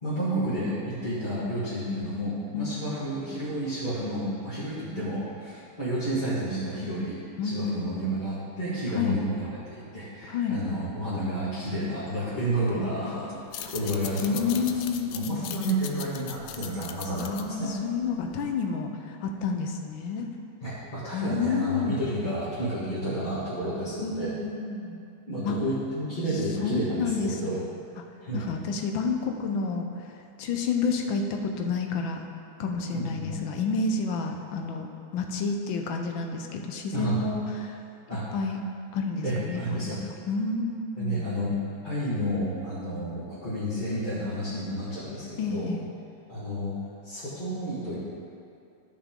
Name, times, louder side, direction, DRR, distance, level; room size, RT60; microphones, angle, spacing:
voice 1, 0.0-14.8 15.1-17.7 20.6-24.3 25.3-27.6 28.2-28.5 32.6-33.3 36.9-37.2 38.1-38.4 39.2-40.0 41.0-41.5 41.8-45.7 46.3-46.8 47.0-48.0, right 1 dB, 25° left, -13 dB, 1.8 m, -31 dB
voice 2, 7.4-8.0 8.9-9.2 10.3-10.6 14.2-15.5 17.2-20.3 21.1-22.0 24.0-25.0 25.4-25.6 26.6-27.6 28.3-29.9 30.4-32.2 32.6-37.8 38.1-38.6 38.9-39.9 40.3-41.3 45.4-45.8, left 4 dB, 75° left, 4 dB, 1.5 m, -29 dB
sound 1, 12.2-18.0, right 5 dB, 65° right, 1.5 m, -49 dB
sound 2, 13.4-18.6, left 10 dB, 90° left, 1.4 m, -40 dB
13.0 x 6.0 x 3.7 m, 2.5 s
omnidirectional pair, 2.2 m